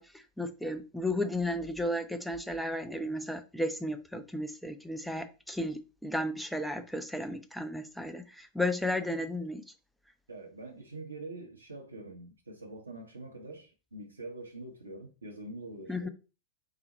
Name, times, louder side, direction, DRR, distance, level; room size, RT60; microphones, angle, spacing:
voice 1, 0.0-9.6 15.9-16.1, left 1 dB, ahead, 0.4 m, -34 dB
voice 2, 10.3-16.1, right 2 dB, 75° right, 0.6 m, -44 dB
3.9 x 2.1 x 4.0 m
figure-of-eight pair, 90°, 0 cm